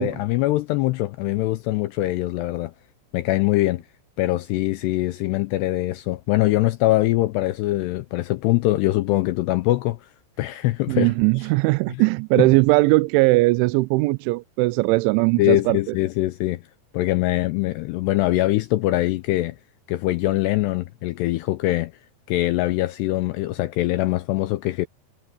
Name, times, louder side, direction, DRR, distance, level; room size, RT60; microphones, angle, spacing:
voice 1, 0.0-2.7 3.1-3.8 4.2-10.1 10.4-11.5 12.3-12.5 15.4-16.6 16.9-19.6 19.9-21.9 22.3-24.9, left 17 dB, 90° left, 2.4 m, -23 dB
voice 2, 10.9-15.8, right 23 dB, 85° right, 2.9 m, -19 dB
omnidirectional pair, 5.5 m